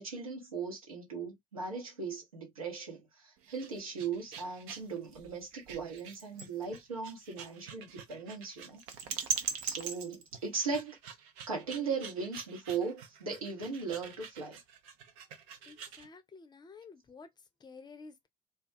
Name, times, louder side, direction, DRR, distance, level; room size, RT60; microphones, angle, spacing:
voice 1, 0.0-8.8 9.6-11.0 11.5-14.5, right 5 dB, 80° right, 0.9 m, -38 dB
sound 1, 3.4-16.1, right 7 dB, 65° right, 0.5 m, -42 dB
voice 2, 15.7-17.3 17.6-18.3, left 4 dB, 25° left, 0.5 m, -51 dB
2.3 x 2.2 x 2.5 m
figure-of-eight pair, 50°, 18 cm